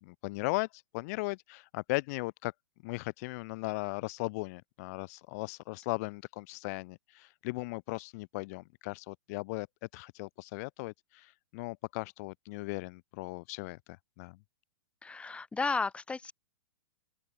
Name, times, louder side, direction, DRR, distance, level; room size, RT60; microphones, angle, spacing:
voice 1, 0.0-2.5 2.8-9.7 9.9-14.4, left 25 dB, 40° left, 1.3 m, -37 dB
voice 2, 15.0-16.3, left 4 dB, 10° left, 1.9 m, -33 dB
figure-of-eight pair, 105°, 12 cm